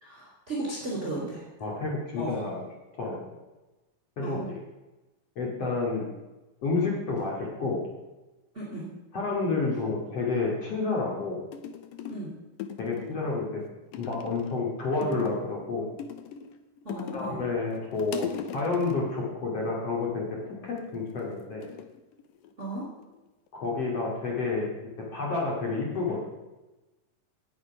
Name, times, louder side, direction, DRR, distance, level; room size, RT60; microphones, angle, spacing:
voice 1, 0.0-1.4 2.2-2.4 4.2-4.5 8.5-8.9 12.1-12.4 16.8-17.4 22.6-22.9, right 2 dB, 20° right, -5 dB, 3.5 m, -35 dB
voice 2, 1.6-2.6 3.0-3.2 4.2-4.6 5.4-6.1 6.6-7.8 9.1-11.4 12.8-13.6 13.9-15.8 17.1-18.3 18.5-20.4 20.6-21.7 23.5-24.7 25.1-26.2, left 3 dB, 45° left, -2 dB, 3.4 m, -29 dB
sound 1, 11.1-11.2 11.5-12.3 12.6-13.4 13.9-14.6 15.0-15.6 16.0-17.4 17.7-19.1 20.7-21.1 21.6-22.7 23.0-23.5, left 9 dB, 80° left, 2.6 m, -39 dB
18.0 x 6.7 x 6.0 m, 1.1 s
omnidirectional pair, 4.0 m